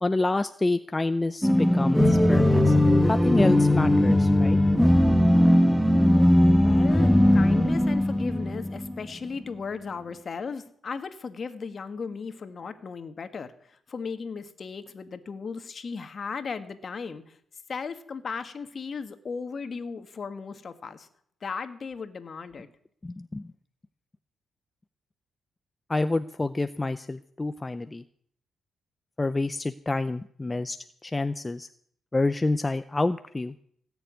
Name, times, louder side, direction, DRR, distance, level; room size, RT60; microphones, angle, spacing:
voice 1, 0.0-2.7 3.1-4.6 23.0-23.5 25.9-28.0 29.2-30.8 31.0-31.7 32.1-33.5, left 2 dB, 20° left, 11 dB, 0.6 m, -28 dB
sound 1, 1.4-9.0, left 1 dB, ahead, 1.3 m, -19 dB
voice 2, 6.4-13.5 13.9-17.2 17.7-21.1 21.4-22.7, left 5 dB, 45° left, 10 dB, 1.7 m, -36 dB
17.5 x 7.0 x 9.5 m, 0.64 s
cardioid pair, 95°, 0 cm